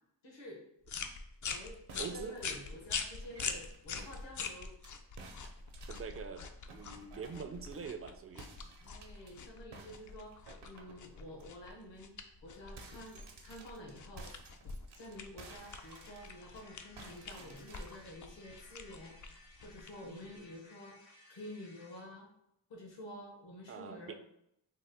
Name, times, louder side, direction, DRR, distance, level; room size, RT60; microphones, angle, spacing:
voice 1, 0.2-0.6 1.4-4.8 8.8-10.4 10.6-14.5 15.0-21.0 21.3-22.3 22.7-24.2, left 1 dB, 70° left, 0 dB, 1.0 m, -50 dB
sound 1, 0.9-20.4, left 5 dB, 45° left, 0.4 m, -45 dB
sound 2, 1.9-4.9 5.2-8.0 8.4-9.3 9.7-11.5 11.9-12.0 12.3-16.6 17.0-18.1, right 3 dB, 60° right, 0.7 m, -55 dB
voice 2, 2.0-2.3 5.9-6.5 6.7-8.5 20.0-20.4 23.7-24.1, right 6 dB, 35° right, 8 dB, 0.4 m, -44 dB
sound 3, 15.6-22.1, left 2 dB, 85° left, 1.2 m, -60 dB
3.7 x 2.1 x 3.3 m, 0.77 s
cardioid pair, 65°, 46 cm